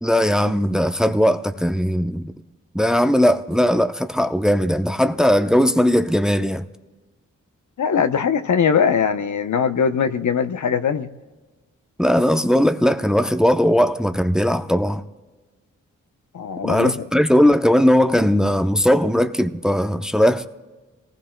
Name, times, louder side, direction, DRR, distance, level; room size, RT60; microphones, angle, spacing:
voice 1, 0.0-2.3 2.7-6.6 12.0-15.0 16.6-20.5, equal, ahead, 0.7 m, -18 dB
voice 2, 7.8-11.1 16.3-17.1, left 6 dB, 65° left, 0.8 m, -21 dB
27.0 x 19.0 x 2.2 m
supercardioid pair, 40°, 32 cm